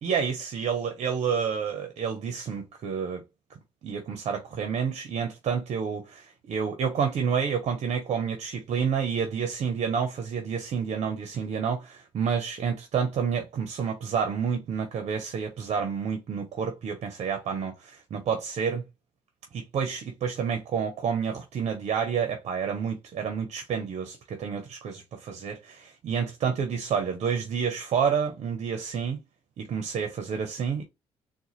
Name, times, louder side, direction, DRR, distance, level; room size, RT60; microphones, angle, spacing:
voice 1, 0.0-3.2 3.8-18.8 19.5-29.2 29.6-30.8, right 6 dB, 65° right, 0.8 m, -29 dB
3.8 x 2.2 x 3.1 m
supercardioid pair, 55°, 12 cm